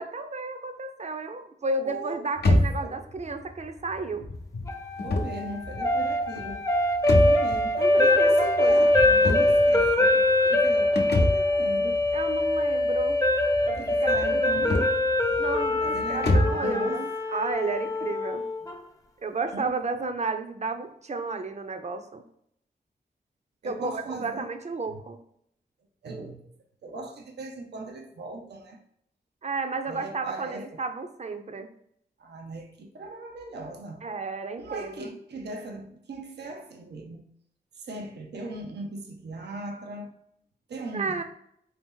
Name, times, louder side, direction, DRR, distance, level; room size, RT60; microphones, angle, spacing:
voice 1, 0.0-4.2 7.8-8.9 12.1-13.2 13.7-14.8 15.4-18.4 19.2-22.2 23.6-25.2 29.4-31.7 34.0-35.2 40.9-41.2, right 3 dB, 40° right, 7 dB, 0.6 m, -32 dB
sound 1, 2.4-16.7, left 1 dB, 75° left, 0.7 m, -29 dB
sound 2, 4.7-18.8, left 1 dB, 20° left, 0.6 m, -23 dB
voice 2, 5.0-6.7 7.2-12.0 13.8-15.0 15.8-17.1 18.6-18.7 19.5-20.1 23.6-24.5 24.9-25.0 26.0-26.5 26.8-28.8 29.8-30.8 32.2-34.1 34.6-37.2 37.7-40.1 40.7-41.2, right 2 dB, 90° right, 3 dB, 0.6 m, -39 dB
3.9 x 2.8 x 3.6 m, 0.71 s
cardioid pair, 60°, 17 cm